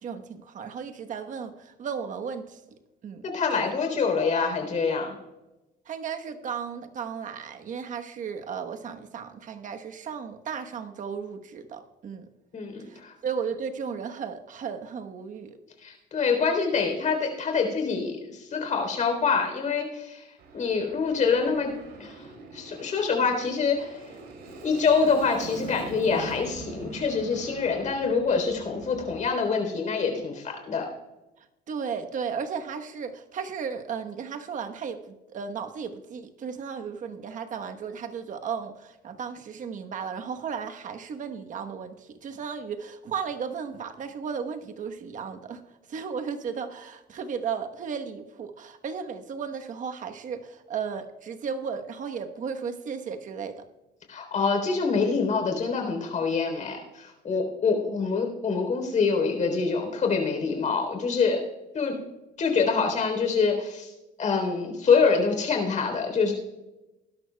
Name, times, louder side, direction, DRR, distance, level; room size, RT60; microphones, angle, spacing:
voice 1, 0.0-3.3 3.6-3.7 5.9-12.3 12.9-15.6 31.4-53.6, right 6 dB, 50° right, 6 dB, 1.2 m, -35 dB
voice 2, 3.3-5.2 12.5-13.1 15.8-20.3 20.5-21.7 22.0-22.3 22.5-24.0 24.6-30.9 54.1-61.4 61.7-62.0 62.4-63.9 64.2-66.3, left 5 dB, 45° left, 3 dB, 3.6 m, -25 dB
Aircraft, 20.4-29.2, right 3 dB, 70° right, 3.5 m, -44 dB
19.5 x 11.5 x 2.3 m, 1.0 s
cardioid pair, 110°, 17 cm